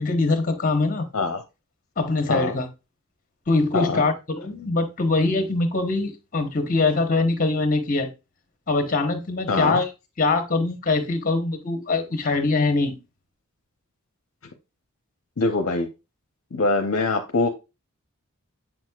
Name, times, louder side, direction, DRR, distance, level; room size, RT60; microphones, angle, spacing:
voice 1, 0.0-1.1 2.0-2.7 3.5-8.1 8.7-9.9 10.2-13.0, left 3 dB, 35° left, 1.0 m, -23 dB
voice 2, 9.5-9.8 15.4-15.9 16.5-17.5, left 3 dB, 60° left, 0.7 m, -23 dB
7.7 x 6.2 x 2.3 m
head